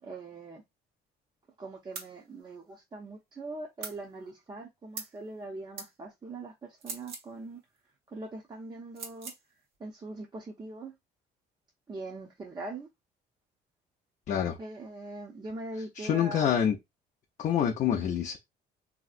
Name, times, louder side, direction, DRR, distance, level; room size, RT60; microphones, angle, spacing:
voice 1, 0.0-0.6 1.6-7.6 8.1-9.3 9.8-10.9 11.9-12.9 14.6-16.6, right 2 dB, 25° right, 0.7 m, -42 dB
sound 1, 1.9-2.1 3.8-4.0 4.9-5.2 5.8-5.9 6.8-7.3 8.9-9.4, right 5 dB, 70° right, 1.0 m, -41 dB
voice 2, 14.3-14.6 16.0-16.8 17.4-18.4, left 9 dB, 50° left, 0.5 m, -26 dB
3.1 x 2.8 x 2.4 m
cardioid pair, 110°, 17 cm